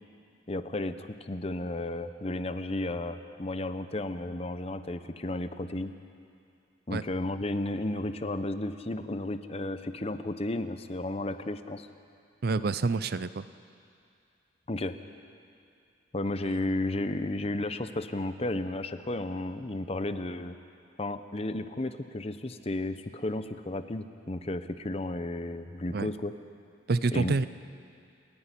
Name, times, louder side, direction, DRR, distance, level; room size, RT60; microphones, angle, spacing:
voice 1, 0.5-5.9 6.9-11.9 14.7-14.9 16.1-20.5 21.0-26.3 27.1-27.3, left 1 dB, 30° left, 10 dB, 0.7 m, -33 dB
voice 2, 12.4-13.5 25.9-26.1 26.9-27.5, right 3 dB, 50° right, 14 dB, 0.5 m, -27 dB
29.0 x 10.0 x 9.8 m, 2.4 s
head